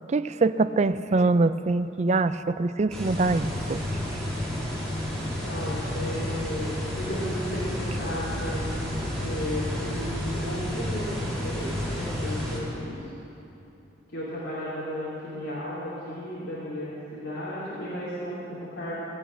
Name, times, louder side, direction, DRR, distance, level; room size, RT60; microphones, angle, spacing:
voice 1, 0.1-3.8, right 3 dB, 35° right, 13 dB, 0.4 m, -24 dB
sound 1, 2.9-12.6, left 1 dB, ahead, 3.5 m, -31 dB
voice 2, 5.1-8.8 9.1-13.0 14.1-19.0, equal, 65° left, -10 dB, 3.2 m, -34 dB
17.0 x 8.8 x 7.9 m, 2.9 s
head